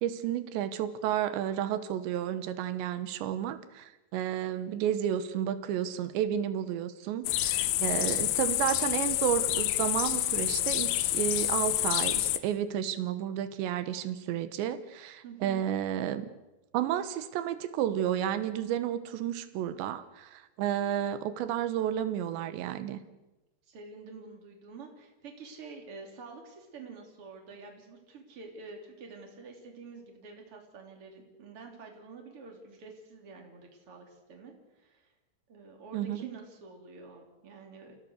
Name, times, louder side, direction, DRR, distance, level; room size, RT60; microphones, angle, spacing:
voice 1, 0.0-16.3 16.7-23.0 35.9-36.3, right 10 dB, 80° right, 12 dB, 3.3 m, -31 dB
sound 1, 7.2-12.4, left 15 dB, 75° left, 2.2 m, -28 dB
voice 2, 15.2-15.6 23.7-35.1 35.5-38.0, right 4 dB, 35° right, 2 dB, 3.6 m, -48 dB
29.5 x 16.5 x 6.5 m, 1.0 s
omnidirectional pair, 5.1 m